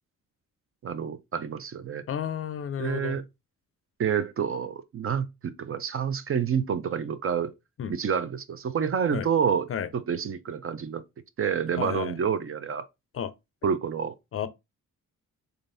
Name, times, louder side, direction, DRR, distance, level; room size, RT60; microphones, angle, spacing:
voice 1, 0.8-2.0 2.8-3.2 4.0-7.5 7.9-9.7 9.9-11.0 11.4-12.8 13.6-14.1, right 7 dB, 45° right, 0.5 m, -28 dB
voice 2, 2.1-3.2 7.8-8.0 9.1-9.3 9.7-9.9 11.8-12.1 13.1-13.3 14.3-14.5, left 8 dB, 45° left, 0.5 m, -32 dB
3.8 x 3.3 x 2.5 m
cardioid pair, 100°, 32 cm